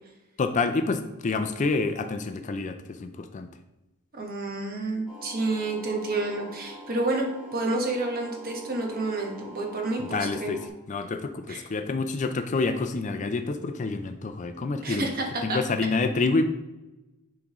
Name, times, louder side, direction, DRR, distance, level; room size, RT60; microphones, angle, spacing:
voice 1, 0.4-3.5 10.0-15.1 15.4-16.4, left 3 dB, 35° left, 9 dB, 0.4 m, -28 dB
voice 2, 4.1-10.5 11.5-11.6 14.8-15.6, right 2 dB, 45° right, 1 dB, 1.2 m, -29 dB
sound 1, 5.1-10.7, equal, ahead, 1.6 m, -44 dB
10.5 x 3.6 x 3.0 m, 1.0 s
head